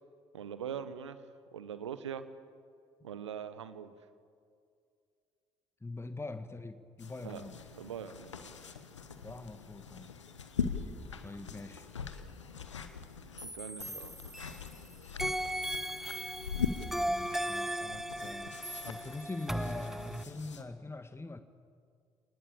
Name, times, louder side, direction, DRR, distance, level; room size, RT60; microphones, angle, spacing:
voice 1, 0.3-1.2 1.5-2.3 3.0-3.9 7.2-7.4 7.8-8.8 13.4-14.1, right 8 dB, 85° right, 13 dB, 1.1 m, -42 dB
voice 2, 5.8-7.6 9.2-10.1 10.8-10.9 11.2-11.9 16.7-18.5 18.8-21.4, left 2 dB, 15° left, 9 dB, 1.7 m, -43 dB
sound 1, 7.0-13.4 13.8-20.6, left 6 dB, 85° left, 1.1 m, -41 dB
sound 2, 13.4-14.8 15.2-20.2, equal, ahead, 1.1 m, -37 dB
27.0 x 19.5 x 8.7 m, 2.3 s
figure-of-eight pair, 45°, 15 cm